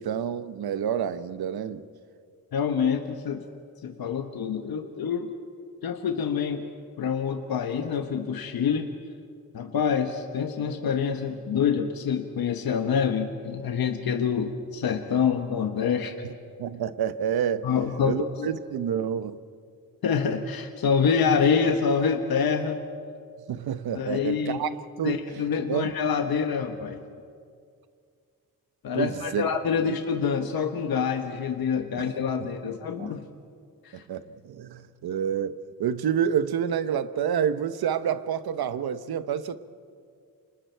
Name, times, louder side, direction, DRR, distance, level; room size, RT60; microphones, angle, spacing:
voice 1, 0.0-1.8 16.6-17.7 18.0-19.4 23.5-24.7 25.0-25.2 25.7-25.9 28.9-29.5 32.4-32.5 33.0-33.1 33.9-39.6, right 8 dB, 80° right, 13 dB, 1.0 m, -28 dB
voice 2, 2.5-3.4 3.8-5.3 5.8-6.6 7.0-8.9 9.5-16.1 17.6-18.5 20.0-22.8 23.9-24.6 25.0-27.0 28.8-33.3 33.8-34.0, left 6 dB, 75° left, 5 dB, 1.3 m, -26 dB
29.5 x 26.0 x 4.6 m, 2.3 s
wide cardioid pair, 130°, 37 cm